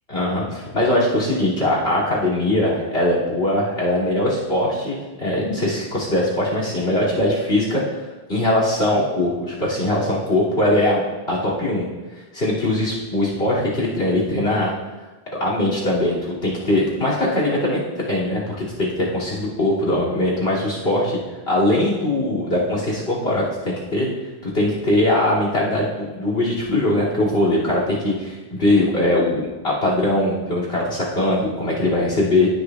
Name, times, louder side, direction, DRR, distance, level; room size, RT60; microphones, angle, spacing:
voice 1, 0.1-7.8 8.3-11.0 11.3-11.8 12.3-14.7 15.4-17.8 18.1-21.2 21.5-24.1 24.4-32.5, left 1 dB, 70° left, -4 dB, 3.0 m, -21 dB
16.0 x 6.7 x 2.4 m, 1.2 s
omnidirectional pair, 1.1 m